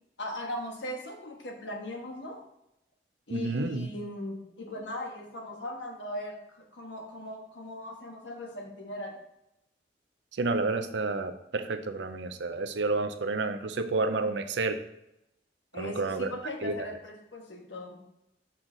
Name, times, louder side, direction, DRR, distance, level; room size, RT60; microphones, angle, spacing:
voice 1, 0.2-2.4 3.3-9.2 15.7-18.0, left 1 dB, 85° left, 2 dB, 1.3 m, -39 dB
voice 2, 3.3-3.9 10.4-14.8 15.8-16.3 16.6-16.7, right 3 dB, 80° right, 9 dB, 0.6 m, -30 dB
6.3 x 5.7 x 3.9 m, 0.84 s
head